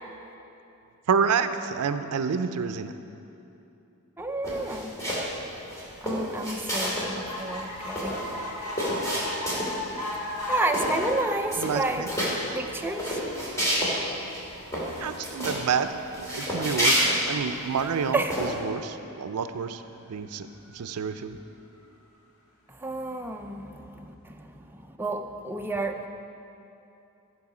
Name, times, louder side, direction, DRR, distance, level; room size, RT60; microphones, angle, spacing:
voice 1, 1.1-2.9 11.6-12.1 15.0-19.8 20.1-20.5 20.7-21.4, right 6 dB, 90° right, 10 dB, 0.4 m, -28 dB
voice 2, 4.2-4.9 6.0-8.2 10.5-12.3 12.5-13.2 18.1-18.4 22.7-26.1, right 2 dB, 10° right, 4 dB, 0.5 m, -31 dB
sound 1, 4.4-5.3 5.7-7.1 7.4-7.5 7.7-9.9 10.3-10.5 10.7-11.2 11.5-12.3 12.8-13.9 14.3-14.4 14.7-15.6 16.1-17.8 18.3-18.5, equal, 15° left, 2.4 m, -29 dB
sound 2, 6.8-19.4 19.9-20.0 20.3-20.4 20.7-20.8, left 1 dB, 75° left, 1.5 m, -38 dB
13.5 x 6.3 x 4.9 m, 2.8 s
head